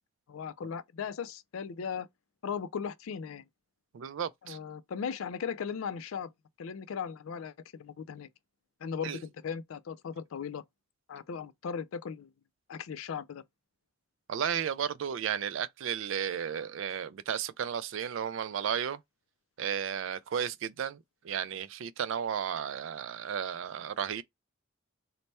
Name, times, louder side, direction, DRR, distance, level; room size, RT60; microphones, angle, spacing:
voice 1, 0.3-2.1 2.4-3.4 4.4-6.3 6.6-8.3 8.8-10.6 11.1-12.3 12.7-13.4, left 6 dB, 80° left, 0.4 m, -37 dB
voice 2, 3.9-4.6 9.0-9.2 14.3-19.0 19.6-21.0 21.2-24.2, right 8 dB, 65° right, 0.4 m, -33 dB
3.3 x 2.1 x 4.1 m
head